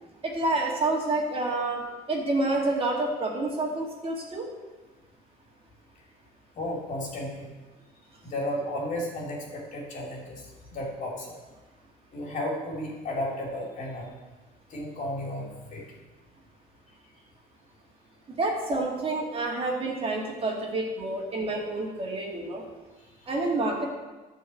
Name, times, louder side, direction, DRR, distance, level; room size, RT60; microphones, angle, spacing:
voice 1, 0.2-4.5 18.3-22.6 23.3-23.9, right 2 dB, 35° right, -1 dB, 2.2 m, -28 dB
voice 2, 6.6-7.5 8.2-10.4 10.7-11.3 12.1-14.1 14.7-15.8, left 1 dB, 50° left, -2 dB, 3.1 m, -33 dB
11.0 x 4.8 x 7.8 m, 1.2 s
cardioid pair, 110°, 17 cm